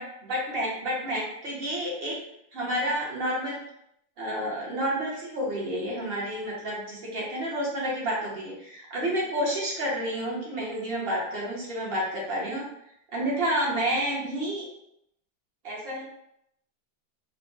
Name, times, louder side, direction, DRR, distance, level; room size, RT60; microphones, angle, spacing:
voice 1, 0.0-2.2 2.5-3.6 4.2-12.7 13.1-14.7 15.6-16.0, equal, 45° right, -4 dB, 0.8 m, -30 dB
3.4 x 2.2 x 3.8 m, 0.76 s
omnidirectional pair, 2.1 m